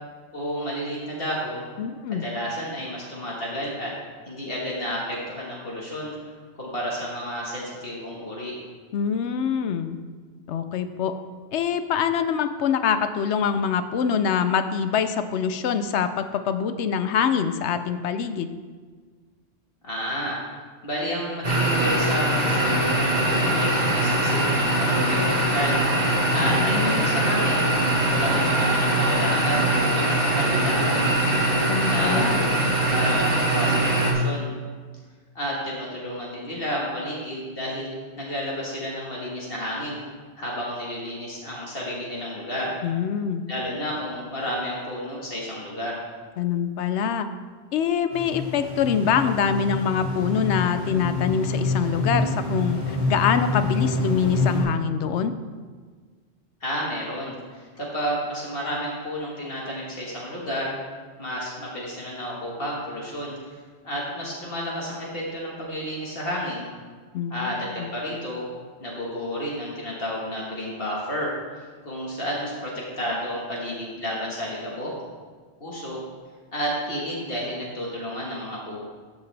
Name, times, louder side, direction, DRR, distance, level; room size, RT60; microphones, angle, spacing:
voice 1, 0.3-1.6 2.1-3.9 4.3-6.2 6.6-8.5 19.8-20.4 20.8-25.8 26.3-27.6 28.1-31.1 31.9-32.2 32.9-34.5 35.4-40.0 40.4-42.8 43.5-46.0 56.6-60.8 61.2-63.5 63.8-66.6 67.3-68.5 68.8-74.9 75.6-76.0 76.5-78.8, equal, 60° left, -4 dB, 1.8 m, -31 dB
voice 2, 1.8-2.2 8.9-10.0 10.5-11.1 11.5-18.5 26.4-27.2 31.7-32.4 42.8-43.4 46.4-47.3 47.7-55.3 67.1-67.9, left 7 dB, 85° left, 10 dB, 0.9 m, -25 dB
sound 1, 21.4-34.1, right 1 dB, 40° right, 1.4 m, -22 dB
sound 2, 48.1-54.6, left 2 dB, 40° left, 2.6 m, -27 dB
13.5 x 5.9 x 3.3 m, 1.5 s
omnidirectional pair, 1.1 m